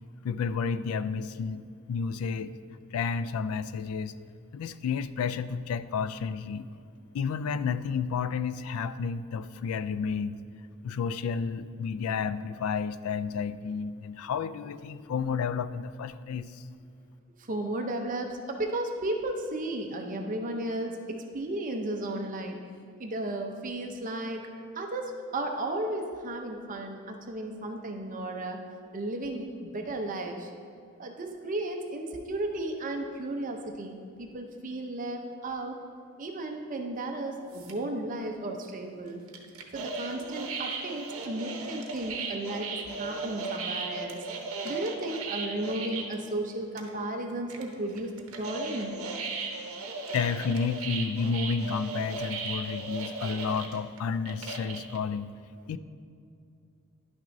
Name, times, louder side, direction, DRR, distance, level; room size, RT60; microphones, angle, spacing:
voice 1, 0.2-2.5 2.9-4.1 4.5-6.7 7.1-10.4 10.8-16.7 50.1-55.3 55.7-55.8, left 5 dB, 80° left, 14 dB, 0.3 m, -31 dB
voice 2, 17.5-22.6 23.0-24.4 24.7-28.6 28.9-30.5 31.0-35.8 36.2-39.2 39.7-44.2 44.6-48.9, right 1 dB, 40° right, 3 dB, 0.6 m, -34 dB
sound 1, 37.5-37.8 39.3-46.1 46.5-46.6 46.8-47.1 47.5-55.0, right 3 dB, 75° right, 0.9 m, -36 dB
11.0 x 6.0 x 2.6 m, 2.4 s
head